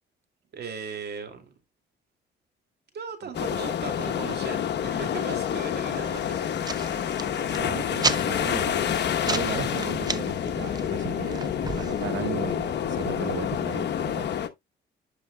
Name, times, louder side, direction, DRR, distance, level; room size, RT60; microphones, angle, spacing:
voice 1, 0.5-1.6 2.9-6.5 7.0-7.3, right 5 dB, 55° right, 2.4 m, -38 dB
voice 2, 3.2-3.5 7.5-8.9 9.3-14.4, right 11 dB, 70° right, 0.6 m, -36 dB
sound 1, 3.3-14.5, left 9 dB, 60° left, 1.0 m, -28 dB
sound 2, 5.9-12.1, right 4 dB, 20° right, 0.6 m, -34 dB
sound 3, 10.5-11.8, left 5 dB, 35° left, 5.3 m, -54 dB
10.5 x 6.2 x 2.2 m
cardioid pair, 90°, 20 cm